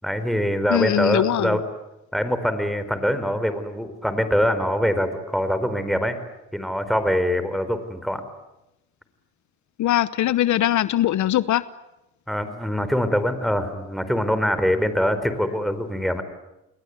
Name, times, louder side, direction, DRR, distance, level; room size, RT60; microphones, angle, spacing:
voice 1, 0.0-1.6 2.1-6.2 6.5-8.2 12.3-16.2, equal, ahead, 10 dB, 4.4 m, -23 dB
voice 2, 0.7-1.6 9.8-11.6, left 12 dB, 75° left, 15 dB, 1.0 m, -21 dB
29.5 x 21.0 x 9.5 m, 0.92 s
cardioid pair, 90°, 30 cm